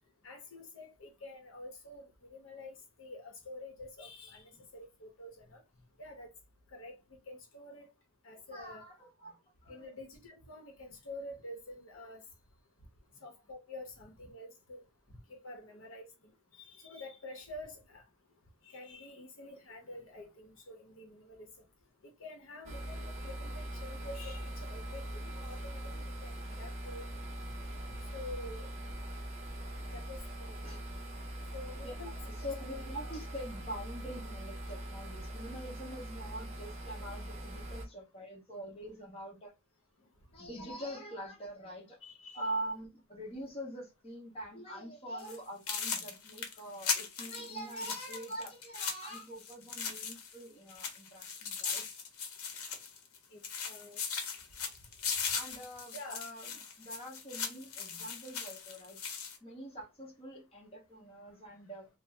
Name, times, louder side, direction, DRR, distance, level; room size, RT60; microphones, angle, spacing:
voice 1, 0.2-5.6 6.0-6.3 6.7-7.9 8.2-8.8 9.7-12.2 13.2-14.8 15.3-18.0 18.6-21.5 22.2-27.1 27.9-28.7 29.9-30.8 31.5-32.5 33.0-33.2 42.0-42.5 53.3-54.0 55.9-56.2, left 1 dB, 65° left, 0.8 m, -48 dB
voice 2, 8.5-9.9 13.1-13.2 29.9-30.0 30.6-30.8 31.8-31.9 32.2-39.5 40.3-42.0 42.3-52.0 55.3-56.5 56.8-59.0 59.4-61.9, right 1 dB, 25° left, 0.9 m, -44 dB
sound 1, 22.6-37.8, right 1 dB, 30° right, 0.7 m, -42 dB
sound 2, 45.2-45.4 45.7-50.4 50.7-53.2 53.4-59.4, left 6 dB, 90° left, 0.8 m, -38 dB
3.3 x 2.0 x 2.6 m
head